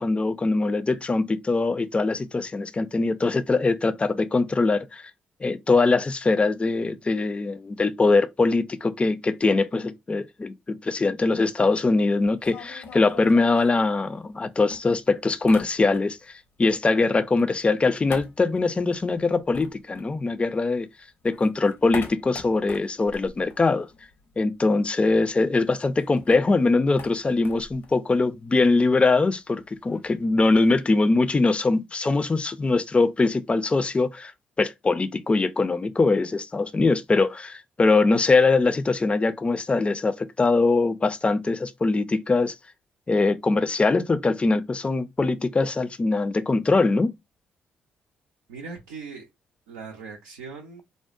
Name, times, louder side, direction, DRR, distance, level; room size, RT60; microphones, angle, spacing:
voice 1, 0.0-5.1 5.4-16.2 16.6-20.9 21.2-23.9 24.4-34.3 34.6-42.5 43.1-47.1, left 3 dB, 25° left, 0.4 m, -22 dB
sound 1, 12.2-14.4 14.7-16.3 16.6-20.8 21.1-24.4 24.6-24.7 25.0-30.8, left 5 dB, 70° left, 0.7 m, -44 dB
voice 2, 48.5-49.3 49.7-50.8, right 5 dB, 90° right, 0.5 m, -39 dB
3.7 x 2.0 x 2.4 m
hypercardioid pair, 45°, 4 cm